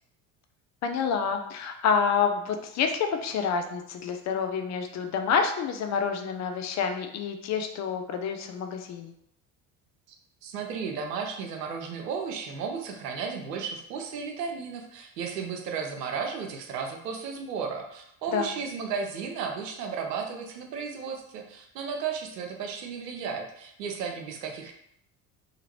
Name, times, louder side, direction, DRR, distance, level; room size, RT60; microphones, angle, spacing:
voice 1, 0.8-9.1 18.3-18.5, left 6 dB, 40° left, 6 dB, 0.4 m, -28 dB
voice 2, 10.4-24.7, right 6 dB, 90° right, 3 dB, 0.6 m, -34 dB
2.8 x 2.5 x 2.9 m, 0.74 s
hypercardioid pair, 65°, 48 cm